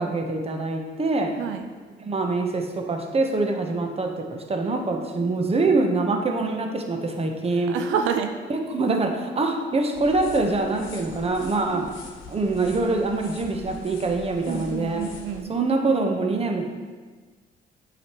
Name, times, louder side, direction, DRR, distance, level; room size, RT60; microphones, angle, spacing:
voice 1, 0.0-1.4 2.0-7.8 8.5-11.9 12.3-15.1 15.5-16.7, right 3 dB, 30° right, 3 dB, 0.9 m, -24 dB
voice 2, 1.4-1.7 7.7-8.3 11.7-11.9 14.5-15.5, right 8 dB, 85° right, 6 dB, 0.5 m, -28 dB
sound 1, 9.9-15.4, left 3 dB, 80° left, 1.0 m, -43 dB
7.5 x 5.0 x 3.0 m, 1.4 s
cardioid pair, 90°, 20 cm